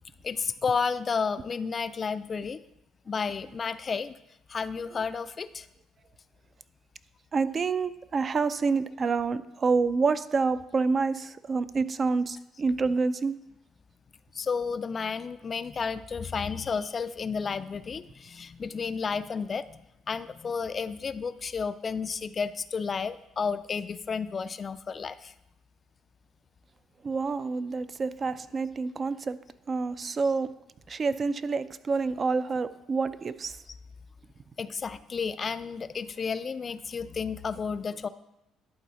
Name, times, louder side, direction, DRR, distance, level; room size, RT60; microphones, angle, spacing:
voice 1, 0.2-2.6 3.1-4.2 4.5-5.7 14.3-19.8 20.1-25.3 34.6-38.1, left 5 dB, 40° left, 14 dB, 0.3 m, -32 dB
voice 2, 7.3-13.4 27.0-29.4 29.7-30.5 30.9-33.6, right 4 dB, 40° right, 13 dB, 0.4 m, -28 dB
11.0 x 3.9 x 4.1 m, 0.87 s
supercardioid pair, 70°, 0 cm